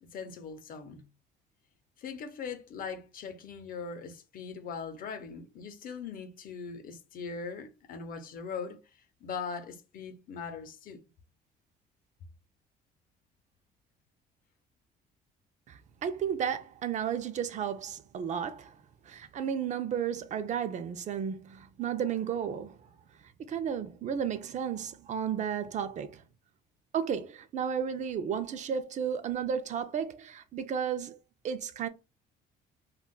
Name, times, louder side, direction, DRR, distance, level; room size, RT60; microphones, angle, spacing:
voice 1, 0.1-1.1 2.0-8.8 9.2-11.0, left 5 dB, 55° left, 0.6 m, -40 dB
voice 2, 15.7-18.8 19.1-22.8 23.4-26.2 26.9-31.2 31.4-31.9, right 8 dB, 45° right, 0.5 m, -33 dB
3.5 x 2.3 x 2.3 m
cardioid pair, 110°, 17 cm